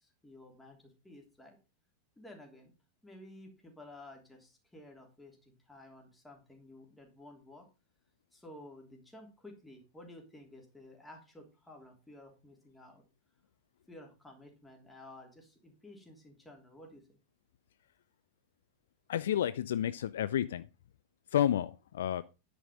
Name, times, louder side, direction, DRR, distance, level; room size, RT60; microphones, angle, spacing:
voice 1, 0.0-1.6 2.2-2.7 3.0-7.7 8.3-13.0 13.9-17.2, left 1 dB, 5° left, 1 dB, 3.0 m, -53 dB
voice 2, 19.1-20.6 21.3-22.2, left 10 dB, 60° left, 16 dB, 0.4 m, -30 dB
9.8 x 6.1 x 5.1 m, 0.29 s
figure-of-eight pair, 90°, 0 cm